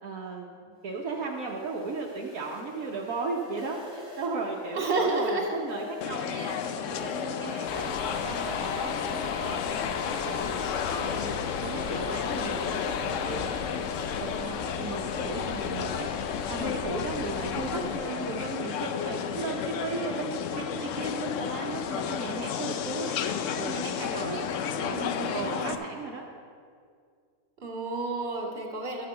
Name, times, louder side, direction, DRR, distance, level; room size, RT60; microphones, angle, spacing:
voice 1, 0.0-7.9 8.2-13.9 14.2-16.1 16.5-23.3 23.6-24.5 24.8-25.0 25.3-26.2, right 3 dB, 75° right, -3 dB, 1.4 m, -36 dB
sound 1, 0.9-9.9, left 8 dB, 25° left, 2.4 m, -44 dB
voice 2, 4.7-5.6 17.5-18.4 24.9-25.7 27.6-29.1, right 3 dB, 45° right, -1 dB, 2.4 m, -31 dB
sound 2, 6.0-25.8, left 7 dB, 65° left, 0.9 m, -32 dB
sound 3, 7.7-18.0, left 6 dB, 90° left, 1.2 m, -36 dB
13.0 x 5.8 x 7.7 m, 2.2 s
omnidirectional pair, 1.5 m